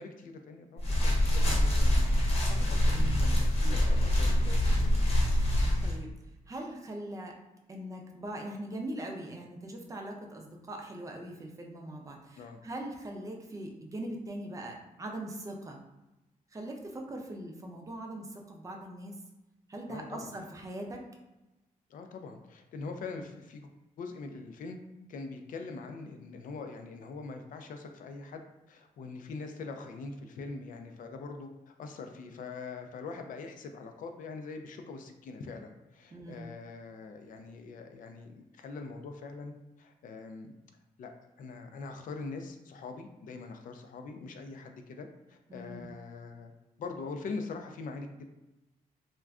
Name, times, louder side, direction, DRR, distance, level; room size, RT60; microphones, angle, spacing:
voice 1, 0.0-2.1 2.6-5.1 12.3-12.6 19.9-20.3 21.9-23.7 24.0-24.8 25.1-40.5 41.0-41.1 41.4-46.5 46.8-48.3, left 4 dB, 70° left, 5 dB, 0.4 m, -43 dB
sound 1, 0.8-6.0, left 1 dB, 45° left, 0.9 m, -25 dB
voice 2, 2.9-3.3 3.6-3.8 4.7-4.9 5.8-6.1 6.5-7.4 7.7-15.8 16.5-19.2 19.7-21.0 36.1-36.5 45.5-45.9, right 1 dB, 25° right, 1 dB, 0.5 m, -41 dB
2.4 x 2.2 x 3.5 m, 1.0 s
cardioid pair, 120°, 14 cm